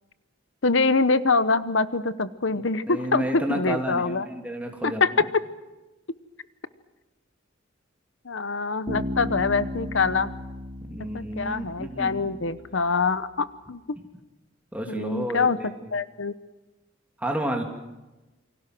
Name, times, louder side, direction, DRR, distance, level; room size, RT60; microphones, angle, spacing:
voice 1, 0.6-4.3 4.8-5.4 8.2-10.3 11.1-13.8 14.9-16.3, left 4 dB, 75° left, 14 dB, 1.0 m, -24 dB
voice 2, 2.5-5.0 10.8-12.4 14.7-15.7 17.2-17.6, right 1 dB, 5° right, 2 dB, 3.1 m, -31 dB
Bass guitar, 8.9-12.6, left 1 dB, 25° right, 3.8 m, -35 dB
28.5 x 25.0 x 6.2 m, 1.1 s
head